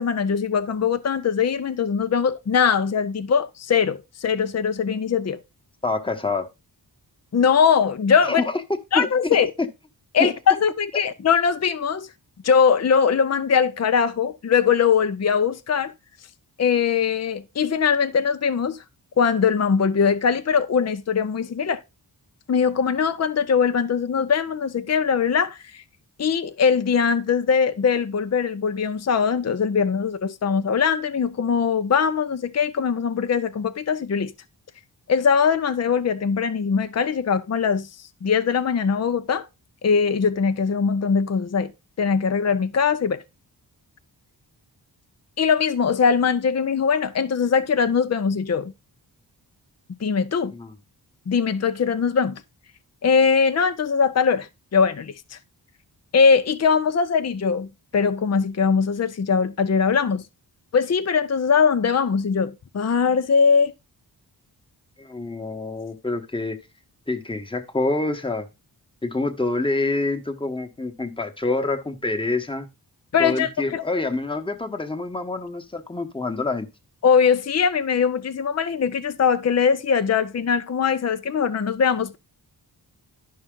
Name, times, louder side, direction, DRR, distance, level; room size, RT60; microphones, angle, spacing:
voice 1, 0.0-5.4 7.3-8.4 8.9-9.5 10.1-12.1 12.4-15.9 16.6-18.8 19.2-21.8 22.5-25.8 26.2-34.3 35.1-37.9 38.2-39.4 39.8-41.7 42.0-43.2 45.4-48.7 50.0-50.5 51.3-52.4 53.0-55.4 56.1-60.3 60.7-63.7 73.1-73.8 77.0-82.2, left 6 dB, 40° left, 0.6 m, -21 dB
voice 2, 5.8-6.5 8.2-8.6 8.9-9.7 10.2-10.3 50.5-50.7 65.0-66.6 67.1-68.5 69.0-72.7 73.2-76.7, left 2 dB, 10° left, 1.2 m, -26 dB
11.0 x 5.6 x 3.8 m
wide cardioid pair, 110°, 41 cm